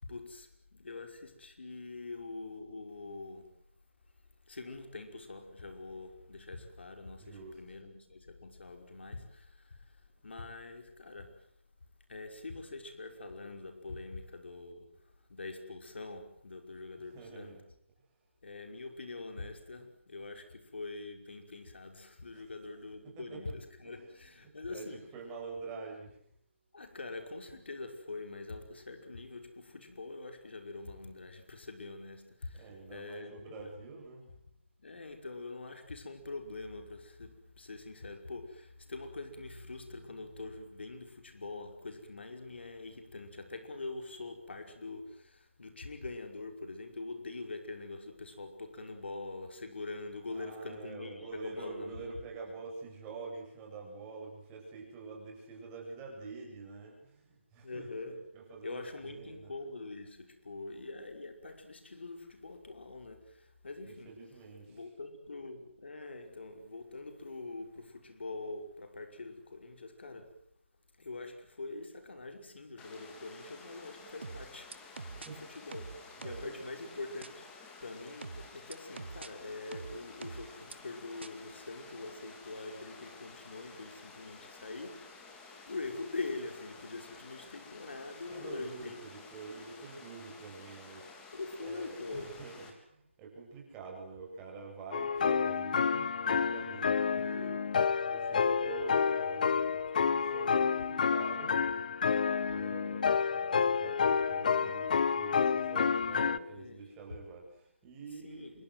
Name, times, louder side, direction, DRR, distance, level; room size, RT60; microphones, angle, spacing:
voice 1, 0.0-3.6 4.5-11.5 12.1-17.6 18.4-25.0 26.7-33.7 34.8-52.2 57.6-58.2 58.6-64.1 64.7-70.4 71.0-75.9 76.2-77.5 77.8-85.1 85.7-89.0 91.3-92.4 106.1-106.9 108.1-108.6, left 3 dB, 60° left, 5.4 m, -44 dB
voice 2, 7.2-7.6 17.1-17.6 22.3-22.4 23.2-23.4 24.0-24.1 24.4-26.2 32.5-34.3 50.3-57.9 58.3-59.5 63.8-64.8 75.0-75.7 76.2-76.6 88.3-91.3 91.6-97.7 98.1-101.5 102.0-108.6, right 4 dB, 15° right, 7.6 m, -46 dB
Water, 72.8-92.7, left 4 dB, 10° left, 3.8 m, -53 dB
sound 1, 74.2-75.3 75.7-76.5 77.2-77.3 78.2-79.3 79.7-80.7 81.2-81.3, right 4 dB, 60° right, 2.0 m, -44 dB
sound 2, 94.9-106.4, left 6 dB, 40° left, 1.1 m, -29 dB
27.5 x 24.0 x 7.8 m
figure-of-eight pair, 155°, 7 cm